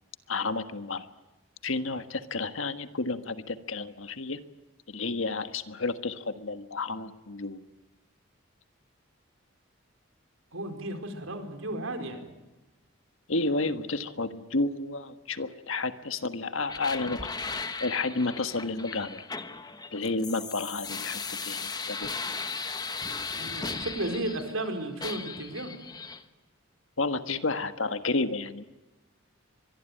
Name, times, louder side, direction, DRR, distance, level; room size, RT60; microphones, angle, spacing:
voice 1, 0.3-1.1 1.6-4.4 4.9-7.6 13.3-17.3 17.8-19.2 19.9-22.1 27.0-28.6, left 3 dB, 80° left, 10 dB, 1.5 m, -31 dB
voice 2, 10.5-12.3 23.4-25.8, right 1 dB, 90° right, 6 dB, 4.5 m, -34 dB
sound 1, 16.7-24.7 25.0-26.2, left 4 dB, 20° left, 1.3 m, -37 dB
24.0 x 22.5 x 9.2 m, 1.1 s
head